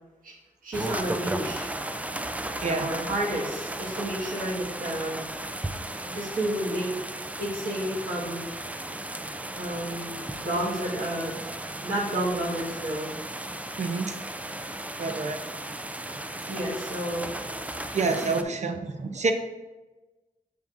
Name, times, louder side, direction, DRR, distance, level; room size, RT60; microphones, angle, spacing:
voice 1, 0.6-1.7 2.6-5.3 6.0-6.9 7.4-8.4 9.5-11.3 11.8-13.1 16.5-17.3, right 1 dB, 75° right, -5 dB, 1.5 m, -31 dB
sound 1, 0.7-18.4, right 1 dB, 10° right, 0.3 m, -35 dB
voice 2, 13.8-14.2 15.0-15.4 16.4-16.5 17.9-19.3, right 4 dB, 55° right, 5 dB, 0.6 m, -27 dB
7.0 x 6.2 x 2.5 m, 1.1 s
wide cardioid pair, 105°, 14 cm